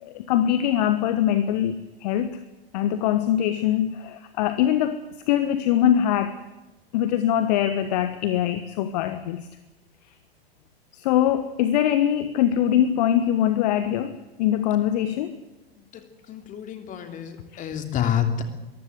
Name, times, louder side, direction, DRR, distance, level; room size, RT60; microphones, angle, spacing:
voice 1, 0.0-2.4 2.7-5.0 5.3-6.4 6.9-9.5 10.9-15.4 17.5-17.6, left 11 dB, 45° left, 11 dB, 1.3 m, -23 dB
voice 2, 15.8-18.4, left 9 dB, 25° left, 7 dB, 3.1 m, -29 dB
23.0 x 15.0 x 8.1 m, 1.1 s
figure-of-eight pair, 100°, 30 cm